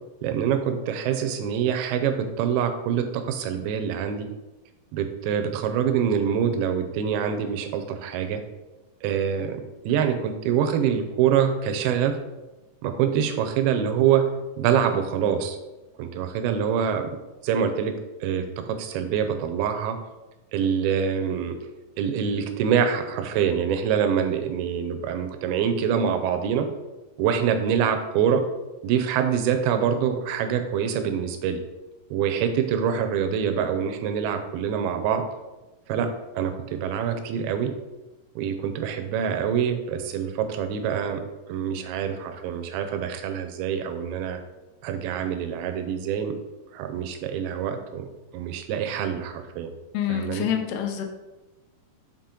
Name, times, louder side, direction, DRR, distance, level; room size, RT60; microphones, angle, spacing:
voice 1, 0.2-4.3 4.9-8.4 9.0-12.2 12.8-14.3 14.6-15.6 16.0-17.1 17.4-20.0 20.5-21.6 22.0-26.7 27.2-28.4 28.8-31.6 32.1-35.2 35.9-37.7 38.4-44.4 44.8-46.3 46.7-48.1 48.3-49.7 50.1-50.5, right 8 dB, 85° right, 6 dB, 2.6 m, -25 dB
voice 2, 49.9-51.1, left 9 dB, 90° left, 5 dB, 2.7 m, -27 dB
5.8 x 5.0 x 3.8 m, 1.1 s
omnidirectional pair, 4.4 m